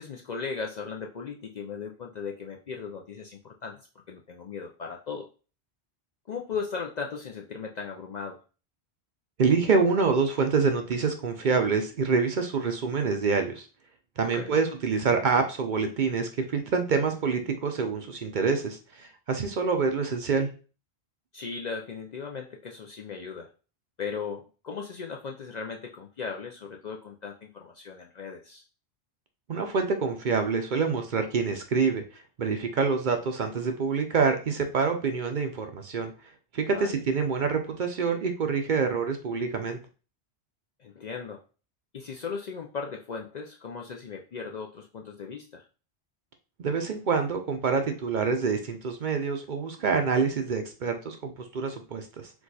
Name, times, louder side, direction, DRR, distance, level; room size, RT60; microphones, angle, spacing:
voice 1, 0.0-3.8 4.1-5.3 6.3-8.4 14.3-14.6 21.3-23.5 24.0-28.6 36.7-37.0 40.8-41.4 41.9-45.6, left 5 dB, 55° left, 1 dB, 0.5 m, -37 dB
voice 2, 9.4-13.7 14.2-20.5 29.5-36.1 36.5-39.8 46.6-52.3, right 5 dB, 55° right, 6 dB, 0.6 m, -26 dB
4.6 x 2.4 x 4.0 m, 0.35 s
omnidirectional pair, 1.1 m